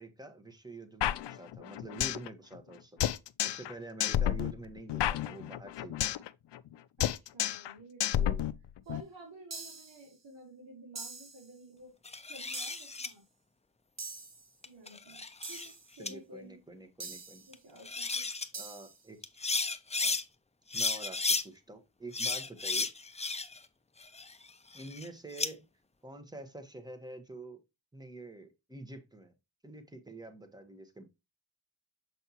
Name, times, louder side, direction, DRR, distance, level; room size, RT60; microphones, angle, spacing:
voice 1, 0.0-3.1 3.4-5.9 8.1-8.4 16.0-17.4 18.5-19.3 20.0-20.2 20.7-22.9 24.7-25.6 26.0-27.6 27.9-29.3 29.6-31.1, right 2 dB, 10° right, 1.3 m, -47 dB
sound 1, 1.0-2.3 2.5-2.6 3.0-3.7 4.0-6.3 6.5-6.7 7.0-7.7 8.0-9.0, left 11 dB, 65° left, 0.5 m, -31 dB
voice 2, 7.0-8.5 8.8-11.9 12.3-13.2 14.6-16.6 17.5-18.3, right 2 dB, 65° right, 3.4 m, -52 dB
sound 2, 9.5-10.0 11.0-11.5 12.5-13.0 14.0-14.5 15.4-15.9 17.0-17.5 18.5-19.0, right 3 dB, 35° right, 1.2 m, -44 dB
sound 3, 12.1-13.1 14.6-15.7 16.1-16.2 17.5-17.6 17.8-18.5 19.2-20.2 20.7-21.4 22.1-23.7 24.0-25.5, left 3 dB, 15° left, 0.6 m, -33 dB
7.0 x 5.5 x 2.9 m
cardioid pair, 90°, 46 cm